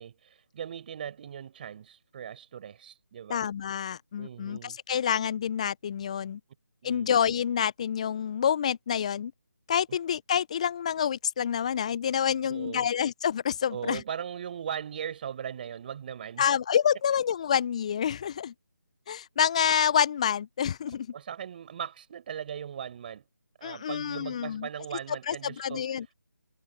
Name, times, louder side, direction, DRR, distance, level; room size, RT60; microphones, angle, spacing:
voice 1, 0.0-3.5 4.2-4.8 6.8-7.1 12.5-12.9 13.7-16.5 21.1-23.3 23.6-25.8, right 8 dB, 30° right, 5.3 m, -39 dB
voice 2, 3.3-6.4 6.8-9.3 9.7-14.0 16.4-18.5 19.1-21.1 23.6-24.7 25.3-26.1, left 8 dB, 20° left, 0.4 m, -28 dB
figure-of-eight pair, 155°, 10 cm